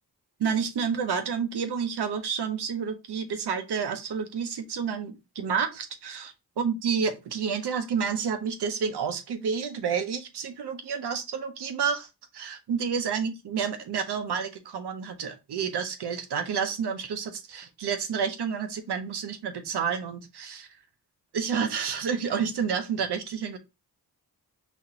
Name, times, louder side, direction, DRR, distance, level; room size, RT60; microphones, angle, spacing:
voice 1, 0.4-6.3 6.6-20.7 21.3-23.6, right 6 dB, 85° right, 7 dB, 0.7 m, -30 dB
4.2 x 2.8 x 2.7 m, 0.25 s
cardioid pair, 60°, 39 cm